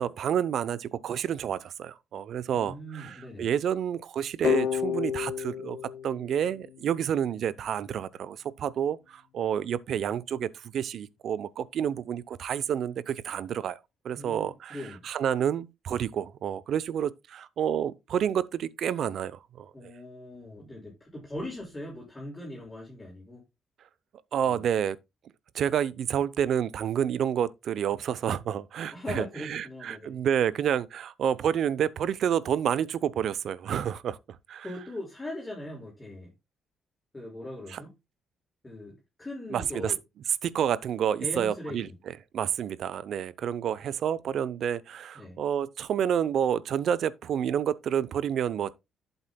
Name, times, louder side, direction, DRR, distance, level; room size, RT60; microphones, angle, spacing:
voice 1, 0.0-5.8 6.0-13.8 14.0-14.8 15.0-19.9 24.3-25.0 25.5-34.2 34.5-34.7 37.7-37.8 39.5-39.9 40.4-41.9 42.3-48.7, right 9 dB, 65° right, 0.6 m, -29 dB
voice 2, 2.5-3.5 14.1-15.0 19.7-23.4 24.4-24.6 28.9-30.2 34.6-36.3 37.1-37.9 38.6-40.0 41.2-41.9 45.1-45.4, left 1 dB, 15° left, 5.8 m, -40 dB
sound 1, 4.4-7.2, left 9 dB, 80° left, 1.1 m, -31 dB
11.5 x 8.0 x 2.2 m
cardioid pair, 90°, 0 cm